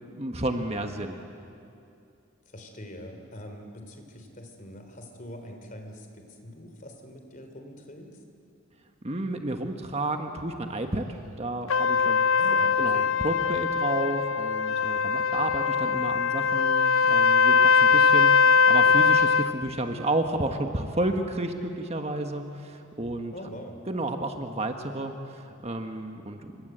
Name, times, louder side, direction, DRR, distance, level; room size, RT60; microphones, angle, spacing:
voice 1, 0.1-1.2 9.0-12.3 12.8-23.3 23.9-26.5, right 1 dB, 30° right, 5 dB, 1.4 m, -31 dB
voice 2, 2.5-8.2 12.4-13.2 23.3-23.8, equal, 40° left, 5 dB, 3.6 m, -43 dB
Trumpet, 11.7-19.5, left 5 dB, 80° left, 0.7 m, -21 dB
28.5 x 25.5 x 8.0 m, 2.6 s
head